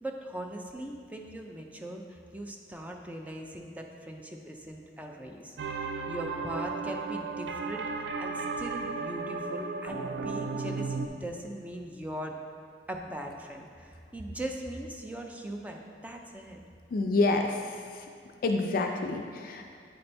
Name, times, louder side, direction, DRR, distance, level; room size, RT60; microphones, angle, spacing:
voice 1, 0.0-5.6 6.1-12.4 12.9-16.6, right 1 dB, 10° right, 1 dB, 0.4 m, -40 dB
sound 1, 5.6-11.1, right 4 dB, 80° right, 0.4 m, -34 dB
voice 2, 16.9-18.1 18.4-19.8, left 2 dB, 50° left, 3 dB, 0.4 m, -28 dB
8.6 x 3.3 x 4.2 m, 2.2 s
head